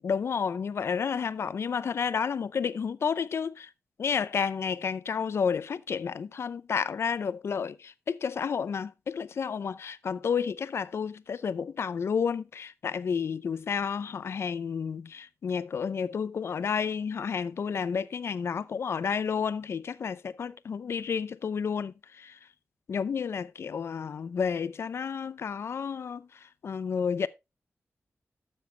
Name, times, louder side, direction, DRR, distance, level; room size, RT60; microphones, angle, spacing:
voice 1, 0.0-3.7 4.0-22.4 22.9-26.3 26.6-27.3, left 6 dB, 65° left, 0.6 m, -31 dB
12.0 x 7.0 x 3.3 m
wide cardioid pair, 140°, 5 cm